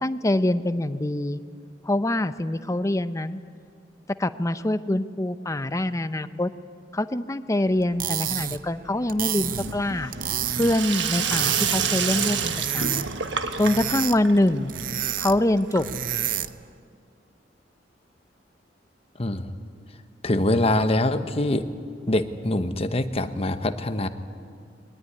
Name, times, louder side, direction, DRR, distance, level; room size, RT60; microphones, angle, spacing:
voice 1, 0.0-1.4 1.8-3.4 4.2-6.5 6.9-10.1 10.6-13.1 13.6-14.7 15.2-15.9, left 1 dB, 20° left, 12 dB, 0.6 m, -24 dB
sound 1, 7.8-16.7, right 10 dB, 50° right, 0.6 m, -31 dB
Sink (filling or washing), 9.4-16.2, right 6 dB, 80° right, 1.4 m, -29 dB
voice 2, 19.2-19.5 20.2-21.7 22.1-24.1, left 1 dB, 35° left, 9 dB, 1.0 m, -24 dB
22.0 x 20.0 x 9.7 m, 2.3 s
head